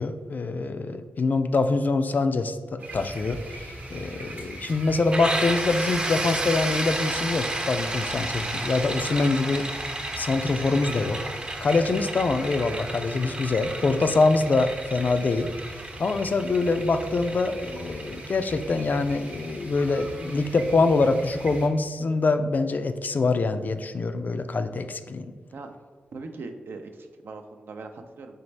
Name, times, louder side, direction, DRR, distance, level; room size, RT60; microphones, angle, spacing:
voice 1, 0.0-9.7 10.2-11.2 11.6-15.5 16.0-25.3, left 3 dB, 50° left, 9 dB, 0.3 m, -24 dB
sound 1, 2.8-21.7, right 1 dB, 50° right, 0.8 m, -40 dB
sound 2, 5.1-20.7, right 1 dB, 25° right, 0.5 m, -33 dB
voice 2, 26.1-28.4, right 3 dB, 70° right, 6 dB, 0.4 m, -40 dB
4.1 x 3.3 x 3.2 m, 1.5 s
cardioid pair, 50°, 4 cm